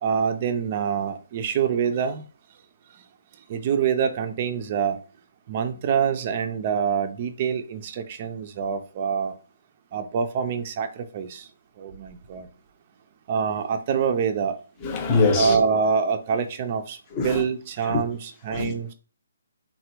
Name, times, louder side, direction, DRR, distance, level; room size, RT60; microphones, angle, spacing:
voice 1, 0.0-2.2 3.5-5.0 5.5-9.3 9.9-11.5 11.8-12.5 13.3-14.6 15.3-17.0 17.2-18.9, right 6 dB, 35° right, 0.4 m, -25 dB
voice 2, 14.8-15.6 17.2-17.4 17.9-18.0 18.5-18.7, left 4 dB, 20° left, 0.7 m, -23 dB
3.2 x 2.2 x 2.9 m
hypercardioid pair, 155°, 0 cm